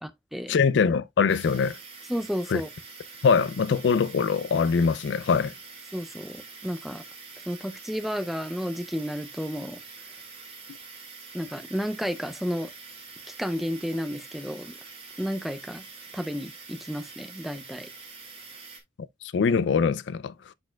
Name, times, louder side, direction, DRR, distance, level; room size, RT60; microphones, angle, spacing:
voice 1, 0.5-1.8 2.5-2.6 3.2-5.5 19.2-20.3, left 5 dB, 70° left, 0.4 m, -23 dB
sound 1, 1.3-18.8, right 4 dB, 30° right, 2.1 m, -45 dB
voice 2, 2.1-2.7 5.9-7.0 7.5-9.8 11.3-12.7 13.3-14.8 15.2-15.8 16.1-17.9, equal, ahead, 0.4 m, -32 dB
10.0 x 4.3 x 2.2 m
head